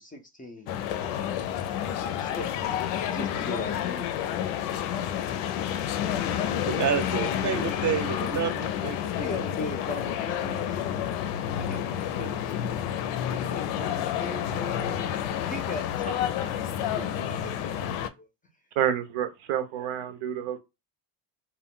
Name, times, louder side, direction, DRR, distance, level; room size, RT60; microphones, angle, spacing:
voice 1, 0.0-1.4 2.2-4.5 5.8-6.4 7.9-8.0 9.2-10.9 11.6-12.5 13.0-18.3, left 3 dB, 15° left, 0.5 m, -40 dB
sound 1, 0.7-18.1, left 10 dB, 85° left, 0.5 m, -30 dB
voice 2, 6.7-9.4, right 8 dB, 35° right, 0.7 m, -29 dB
voice 3, 18.8-20.6, right 10 dB, 80° right, 0.8 m, -28 dB
2.2 x 2.0 x 3.7 m
cardioid pair, 100°, 49 cm